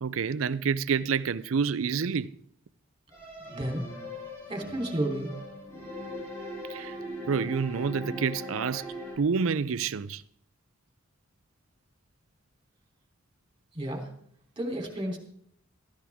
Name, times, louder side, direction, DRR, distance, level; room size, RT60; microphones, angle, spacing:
voice 1, 0.0-2.3 6.7-7.0 7.3-8.9 9.2-10.2, right 6 dB, 70° right, 0.5 m, -28 dB
sound 1, 3.1-9.2, equal, 15° left, 4.8 m, -40 dB
voice 2, 3.5-3.8 4.5-5.4 13.7-14.1 14.6-15.2, right 1 dB, 25° right, 3.4 m, -31 dB
16.5 x 14.0 x 3.6 m
head